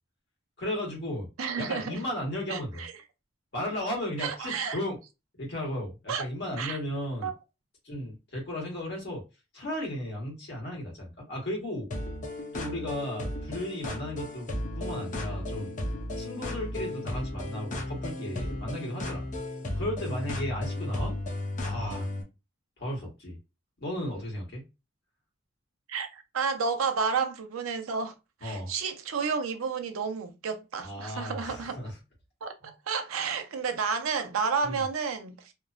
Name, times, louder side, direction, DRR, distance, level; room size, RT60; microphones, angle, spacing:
voice 1, 0.6-1.3 1.6-2.8 3.5-5.0 5.3-7.3 7.8-9.2 9.5-11.9 12.5-15.7 16.2-19.2 19.7-21.1 21.6-22.1 22.8-23.4 23.8-24.6 28.4-28.7 30.8-32.0 32.6-32.7 34.6-34.8, left 1 dB, 55° left, 1.4 m, -35 dB
voice 2, 1.4-2.0 2.5-2.9 4.2-4.8 6.1-6.2 6.6-6.8 7.2-7.3 25.9-28.1 28.4-31.8 32.4-35.5, right 5 dB, 90° right, 0.5 m, -31 dB
sound 1, 11.9-22.2, left 1 dB, 35° left, 0.6 m, -34 dB
2.9 x 2.1 x 2.4 m
head